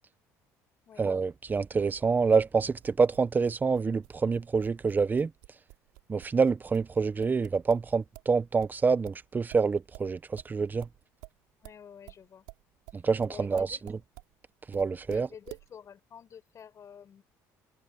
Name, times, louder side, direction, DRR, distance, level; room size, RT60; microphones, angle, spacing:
voice 1, 1.0-5.3 6.1-10.9 12.9-14.0 14.7-15.3, right 5 dB, 25° right, 0.9 m, -27 dB
sound 1, 2.8-8.3 8.6-14.3 14.7-15.7, right 26 dB, 85° right, 6.4 m, -49 dB
voice 2, 11.6-12.4 13.3-13.8 15.1-17.2, left 8 dB, 45° left, 6.1 m, -49 dB
supercardioid pair, 90°, 7 cm